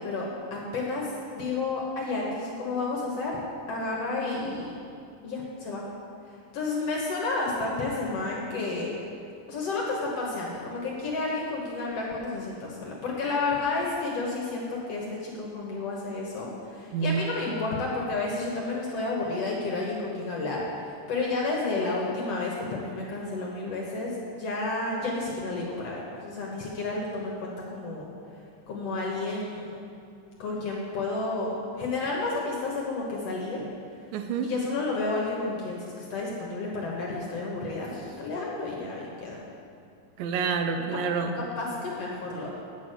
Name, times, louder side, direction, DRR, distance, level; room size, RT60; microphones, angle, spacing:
voice 1, 0.0-3.4 3.7-4.7 5.2-5.8 6.5-8.9 9.5-28.1 28.7-29.8 30.4-33.6 34.4-39.4 40.7-40.8 41.4-42.5, left 3 dB, 60° left, -3 dB, 1.8 m, -31 dB
voice 2, 16.9-17.7 34.1-34.5 40.2-41.4, right 5 dB, 85° right, 6 dB, 2.4 m, -28 dB
9.1 x 6.1 x 7.7 m, 2.6 s
omnidirectional pair, 4.0 m